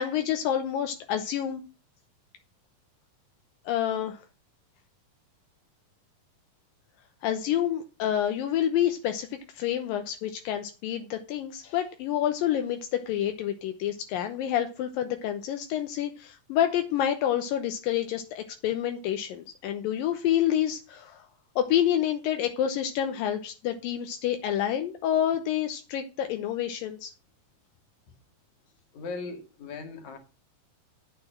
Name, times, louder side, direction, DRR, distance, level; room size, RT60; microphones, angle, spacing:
voice 1, 0.0-1.6 3.7-4.2 7.2-9.3 9.5-21.3 21.6-27.1, left 10 dB, 80° left, 2.6 m, -28 dB
voice 2, 28.9-30.2, left 4 dB, 60° left, 3.1 m, -38 dB
9.8 x 6.9 x 7.2 m
omnidirectional pair, 4.0 m